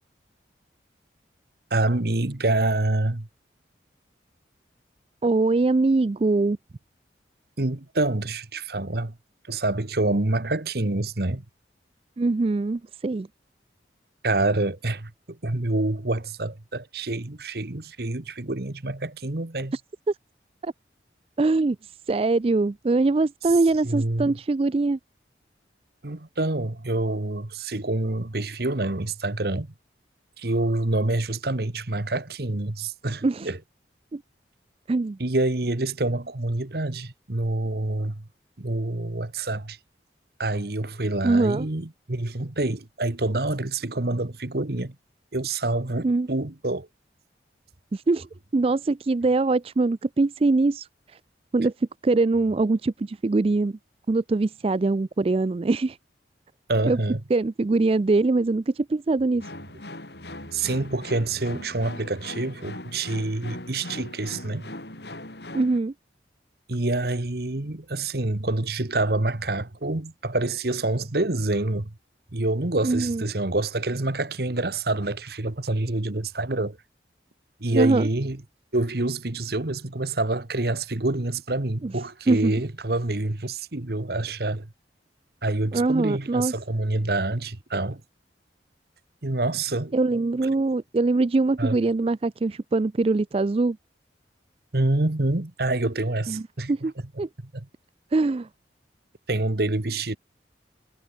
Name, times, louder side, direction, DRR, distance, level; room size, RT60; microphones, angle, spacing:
voice 1, 1.7-3.3 7.6-9.2 9.5-11.4 14.2-19.8 23.8-24.3 26.0-29.7 30.4-33.6 35.2-38.3 38.6-39.8 40.4-44.9 45.3-46.9 56.7-57.2 60.5-64.7 66.7-71.9 72.3-76.8 77.6-78.4 78.7-84.7 85.4-88.0 89.2-89.9 91.6-91.8 94.7-96.7 97.5-97.7 99.3-100.2, right 2 dB, 55° right, 1.4 m, -27 dB
voice 2, 5.2-6.6 12.2-13.3 19.7-19.8 20.1-20.2 20.6-20.7 21.4-25.0 33.2-33.5 34.1-34.2 34.9-35.2 41.2-41.7 46.0-46.3 47.9-48.3 48.5-51.2 51.5-53.8 54.1-56.0 56.9-57.0 57.3-59.5 65.5-65.9 72.8-73.2 77.7-78.1 81.8-81.9 82.3-82.5 85.7-86.5 89.9-93.8 96.3-96.4 96.7-96.9 97.2-97.3 98.1-98.5, right 3 dB, 30° right, 0.4 m, -23 dB
sound 1, 59.4-65.8, left 1 dB, 65° left, 4.4 m, -40 dB
head